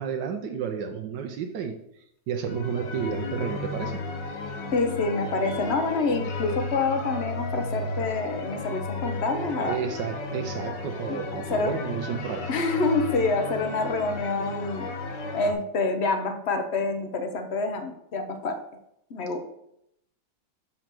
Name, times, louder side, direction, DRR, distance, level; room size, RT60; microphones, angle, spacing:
voice 1, 0.0-1.8 2.3-4.0 9.6-12.5, right 7 dB, 80° right, 4 dB, 1.4 m, -31 dB
sound 1, 2.4-15.5, left 2 dB, 85° left, 1.7 m, -34 dB
voice 2, 4.7-9.8 11.5-11.7 12.5-14.9 15.3-18.6 19.1-19.4, left 3 dB, 50° left, 7 dB, 0.8 m, -27 dB
6.3 x 4.5 x 5.9 m, 0.76 s
omnidirectional pair, 1.9 m